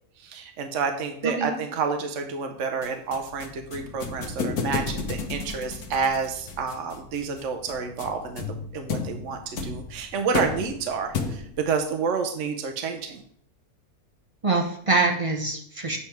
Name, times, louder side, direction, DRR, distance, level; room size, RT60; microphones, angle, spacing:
voice 1, 0.2-13.2, right 5 dB, 60° right, 5 dB, 1.0 m, -29 dB
voice 2, 1.2-1.6 14.4-16.0, right 3 dB, 25° right, 1 dB, 0.8 m, -24 dB
sound 1, 2.8-11.7, left 4 dB, 85° left, 1.4 m, -33 dB
8.4 x 3.4 x 5.8 m, 0.64 s
omnidirectional pair, 1.6 m